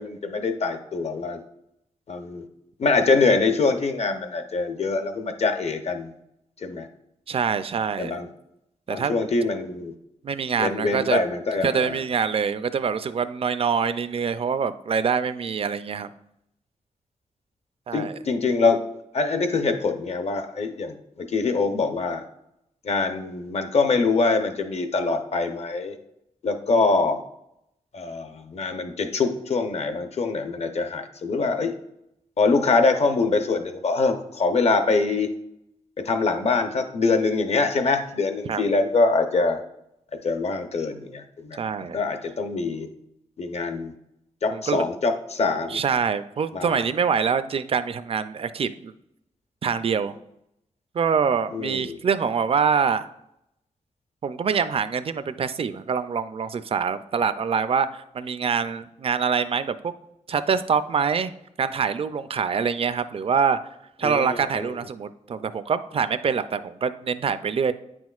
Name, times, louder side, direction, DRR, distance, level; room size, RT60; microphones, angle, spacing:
voice 1, 0.0-1.4 2.1-2.5 2.8-6.1 6.6-6.9 8.0-8.3 8.9-9.9 10.6-12.0 17.9-18.8 19.1-22.2 22.8-26.0 26.4-27.2 27.9-31.7 32.4-35.3 36.0-39.6 40.2-42.9 43.4-43.9 44.4-45.8 46.5-46.8 51.5-52.0 64.0-64.8, left 3 dB, 55° left, 7 dB, 0.7 m, -24 dB
voice 2, 7.3-8.2 8.9-9.2 10.2-11.2 11.6-16.1 17.9-18.1 38.5-38.6 41.6-42.0 44.5-44.8 45.7-48.9 49.6-50.1 50.9-53.1 54.2-59.9 60.3-61.3 61.6-63.6 64.0-67.7, right 6 dB, 45° right, 12 dB, 0.4 m, -25 dB
9.1 x 6.1 x 2.4 m, 0.81 s
wide cardioid pair, 120°, 13 cm